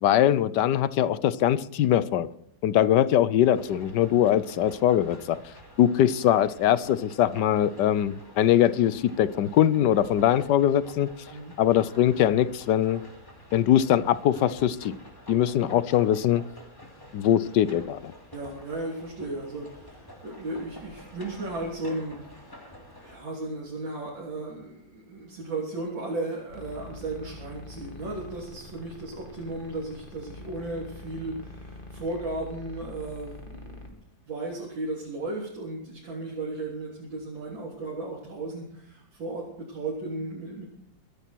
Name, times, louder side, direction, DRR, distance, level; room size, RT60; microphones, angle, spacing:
voice 1, 0.0-2.3 2.6-5.4 5.8-11.1 11.6-13.0 13.5-14.9 15.3-16.4 17.1-18.1, left 11 dB, 70° left, 16 dB, 1.3 m, -22 dB
sound 1, 3.5-23.2, equal, 10° left, 2.9 m, -48 dB
voice 2, 18.3-22.7 23.0-34.0 34.3-40.7, right 2 dB, 75° right, -5 dB, 4.1 m, -35 dB
sound 2, 26.5-33.9, left 2 dB, 25° left, 2.4 m, -44 dB
24.0 x 10.0 x 4.6 m, 0.71 s
omnidirectional pair, 2.1 m